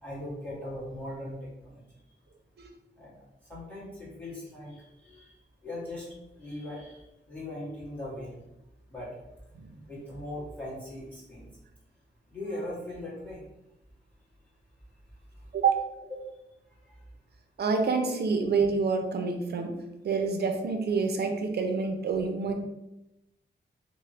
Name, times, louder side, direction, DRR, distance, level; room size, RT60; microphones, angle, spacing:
voice 1, 0.0-1.8 3.0-3.1 3.5-5.3 5.6-6.1 6.4-7.0 7.3-8.4 8.9-9.1 9.9-11.5 12.3-13.4 16.1-16.2, left 1 dB, 10° left, -8 dB, 1.5 m, -39 dB
voice 2, 17.6-19.7 20.0-22.5, right 4 dB, 60° right, 4 dB, 0.4 m, -27 dB
3.0 x 2.0 x 2.8 m, 0.90 s
wide cardioid pair, 100°, 20 cm